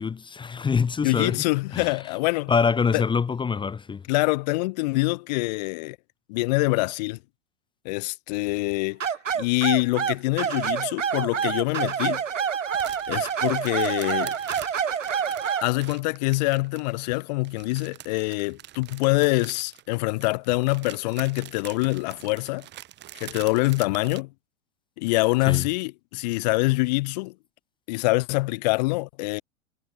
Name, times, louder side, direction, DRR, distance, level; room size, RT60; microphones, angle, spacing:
voice 1, 0.0-1.4 1.7-1.9 2.5-4.0 25.5-25.7, left 5 dB, 10° left, 1.2 m, -25 dB
voice 2, 1.0-2.5 2.9-3.0 4.1-6.0 6.3-7.2 7.8-9.0 9.3-12.2 13.1-14.4 15.6-22.7 23.1-24.3 25.0-27.3 27.9-29.4, left 24 dB, 35° left, 0.5 m, -25 dB
sound 1, 9.0-15.7, right 7 dB, 75° right, 1.4 m, -27 dB
sound 2, 12.7-24.2, right 14 dB, 30° right, 1.8 m, -45 dB
figure-of-eight pair, 90°, 38 cm